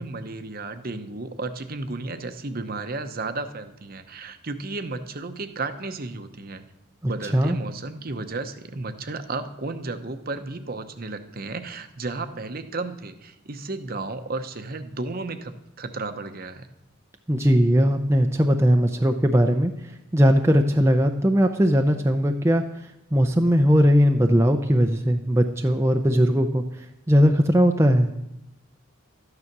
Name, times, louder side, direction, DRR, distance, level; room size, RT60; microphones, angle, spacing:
voice 1, 0.0-6.6 7.0-16.7, right 3 dB, 45° right, 9 dB, 0.8 m, -33 dB
voice 2, 7.0-7.6 17.3-19.7 20.1-22.6 23.1-26.6 27.1-28.1, equal, 10° right, 4 dB, 0.6 m, -19 dB
13.0 x 9.8 x 6.0 m, 0.88 s
head